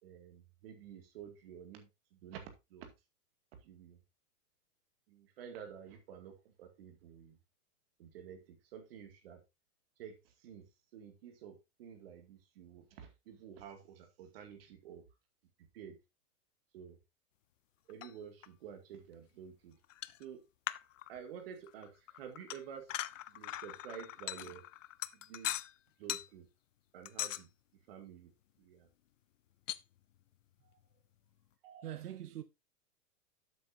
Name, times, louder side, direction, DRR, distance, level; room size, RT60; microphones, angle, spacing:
voice 1, 0.0-2.9 3.6-4.0 5.1-7.4 8.0-9.4 10.0-15.1 15.6-16.0 16.7-17.0 17.9-19.8 20.2-20.4 21.1-22.9 23.3-24.6 25.1-25.5 26.0-26.5 26.9-27.5 27.9-28.3 28.6-28.9 31.6-31.9, right 8 dB, 40° right, 2.2 m, -51 dB
sound 1, 17.9-18.1 18.4-18.5 19.8-20.2 20.7-21.4 21.7-25.7 26.0-26.3 27.0-27.4 29.7-29.8, left 13 dB, 60° left, 0.5 m, -41 dB
voice 2, 30.6-31.0 31.8-32.4, right 12 dB, 85° right, 1.3 m, -45 dB
11.0 x 8.2 x 2.7 m
supercardioid pair, 175°, 45 cm